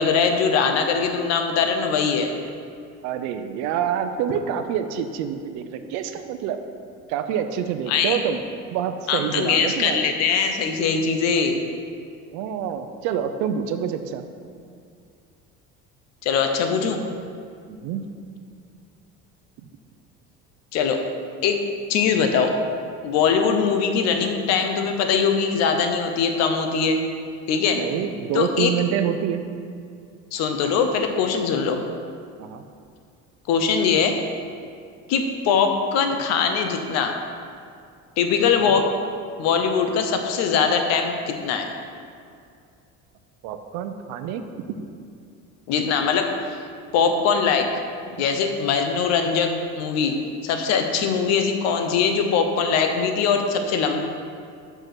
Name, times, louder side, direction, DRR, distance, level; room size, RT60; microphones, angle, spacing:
voice 1, 0.0-2.3 7.9-8.2 9.1-11.6 16.2-17.0 20.7-21.0 21.4-21.6 21.9-22.5 23.0-27.0 27.5-27.8 28.3-28.7 30.3-31.8 33.5-34.2 35.1-37.2 38.2-38.9 39.4-41.7 45.7-46.3 46.9-47.7 48.2-50.2 50.4-54.0, left 6 dB, 60° left, 5 dB, 0.8 m, -21 dB
voice 2, 3.0-6.6 7.1-8.4 8.7-10.1 12.3-14.2 17.7-18.1 27.7-29.4 32.4-32.6 38.6-38.8 43.4-45.0, right 8 dB, 75° right, 8 dB, 0.6 m, -27 dB
6.1 x 5.5 x 6.0 m, 2.3 s
cardioid pair, 165°, 29 cm